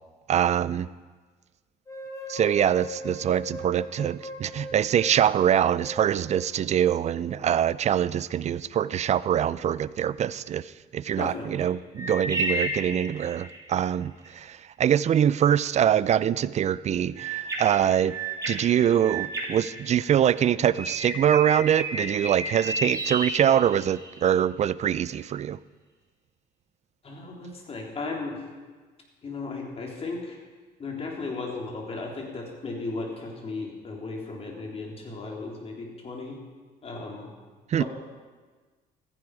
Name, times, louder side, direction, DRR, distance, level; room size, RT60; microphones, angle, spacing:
voice 1, 0.3-0.9 2.3-18.2 18.5-25.6 37.7-37.8, right 9 dB, 40° right, 19 dB, 0.4 m, -24 dB
sound 1, 1.9-7.9, left 1 dB, 20° left, 2.7 m, -40 dB
voice 2, 11.2-11.7 27.0-28.4 29.2-30.4 30.8-36.4 36.8-37.3 37.8-37.9, left 3 dB, 35° left, 0 dB, 3.5 m, -35 dB
sound 2, 12.0-13.7 17.2-20.3 20.7-24.2, right 1 dB, 20° right, 3.1 m, -32 dB
15.5 x 14.5 x 4.9 m, 1.4 s
cardioid pair, 110°, 17 cm